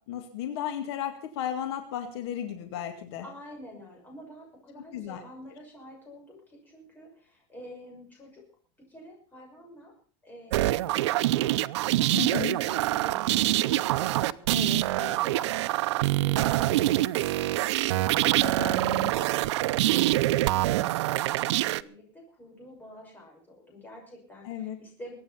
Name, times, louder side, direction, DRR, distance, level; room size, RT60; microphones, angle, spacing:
voice 1, 0.1-3.2 4.9-5.2 12.1-12.6 14.5-14.8 18.2-19.1 24.4-24.8, left 10 dB, 65° left, 7 dB, 2.2 m, -34 dB
voice 2, 3.2-8.4 8.8-9.9 10.2-15.8 16.1-18.8 19.1-25.2, left 1 dB, 10° left, 0 dB, 6.2 m, -48 dB
sound 1, 10.5-21.8, right 16 dB, 85° right, 0.7 m, -25 dB
22.5 x 9.2 x 5.6 m, 0.43 s
supercardioid pair, 170°, 14 cm